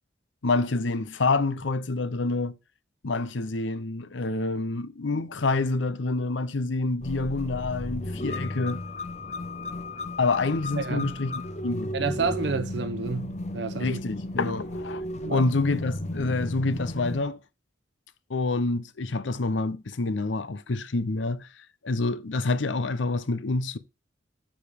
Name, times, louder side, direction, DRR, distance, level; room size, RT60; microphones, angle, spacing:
voice 1, 0.4-2.5 3.0-8.8 10.2-11.9 13.8-15.0 15.3-17.4 18.3-21.5 21.8-23.8, left 3 dB, 80° left, 0.7 m, -27 dB
sound 1, 7.0-17.2, left 1 dB, 35° left, 0.7 m, -34 dB
voice 2, 10.8-11.1 11.9-14.0 14.4-14.6 15.2-15.5, right 4 dB, 65° right, 0.6 m, -30 dB
8.5 x 5.0 x 3.5 m
head